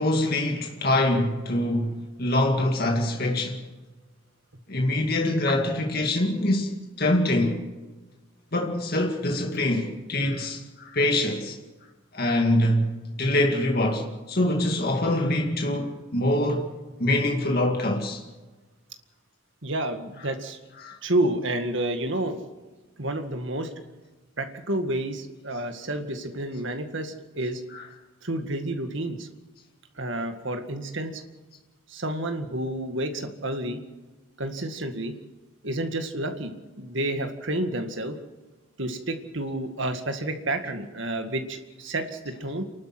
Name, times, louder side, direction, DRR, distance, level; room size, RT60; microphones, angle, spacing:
voice 1, 0.0-3.6 4.7-6.7 7.0-7.6 8.5-11.6 12.1-16.7 17.0-18.2 20.8-21.0 27.7-27.8, left 1 dB, 45° left, 2.3 m, -24 dB
voice 2, 19.6-20.6 21.0-22.4 23.0-23.7 24.4-27.6 28.2-29.3 30.0-31.2 31.9-33.8 34.4-35.1 35.6-38.2 38.8-42.6, right 1 dB, 60° right, 2.0 m, -30 dB
28.5 x 12.0 x 7.8 m
head